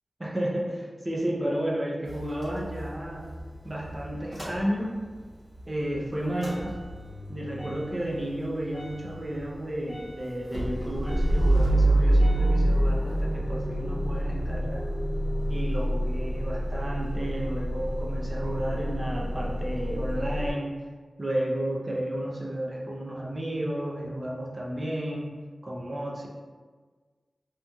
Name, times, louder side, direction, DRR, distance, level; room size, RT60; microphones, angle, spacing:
voice 1, 0.2-3.3 3.6-5.0 5.7-6.8 7.3-14.9 15.5-20.7 21.2-25.4 25.6-26.3, right 1 dB, 30° right, -3 dB, 0.5 m, -32 dB
Motor vehicle (road) / Engine starting / Idling, 2.0-5.2 5.5-20.5, right 1 dB, 20° left, 0.9 m, -28 dB
2.9 x 2.6 x 2.2 m, 1.5 s
wide cardioid pair, 80°, 0 cm